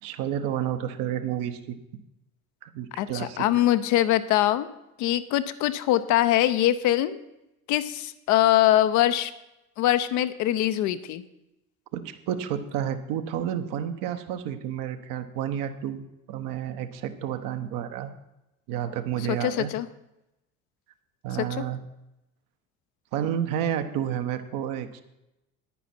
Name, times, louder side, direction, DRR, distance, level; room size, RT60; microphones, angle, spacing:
voice 1, 0.0-1.8 2.6-3.5 11.9-18.1 18.7-19.7 21.2-21.8 23.1-25.0, right 10 dB, 50° right, 8 dB, 1.1 m, -30 dB
voice 2, 3.0-4.7 5.0-7.2 7.7-9.3 9.8-11.2 19.3-19.9 21.6-21.7, left 13 dB, 45° left, 12 dB, 0.7 m, -23 dB
10.0 x 10.0 x 4.3 m, 0.90 s
figure-of-eight pair, 65°, 42 cm